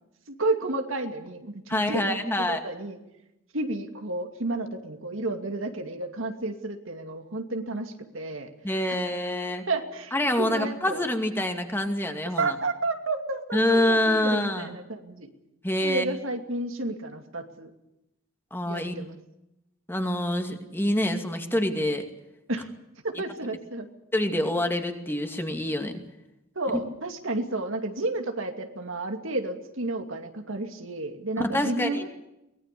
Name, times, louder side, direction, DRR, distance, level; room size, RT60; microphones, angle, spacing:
voice 1, 0.3-2.2 2.5-3.0 3.5-8.5 8.9-9.0 9.7-11.1 12.4-15.3 15.8-17.7 18.6-19.2 22.5-22.7 23.0-23.9 26.6-32.1, right 2 dB, 65° right, 5 dB, 2.5 m, -31 dB
voice 2, 1.7-2.6 8.6-9.6 10.1-12.5 13.5-14.7 15.6-16.1 18.5-18.9 19.9-22.1 24.1-26.0 31.4-32.1, left 1 dB, 10° left, 5 dB, 2.4 m, -26 dB
24.0 x 20.0 x 6.9 m, 0.88 s
head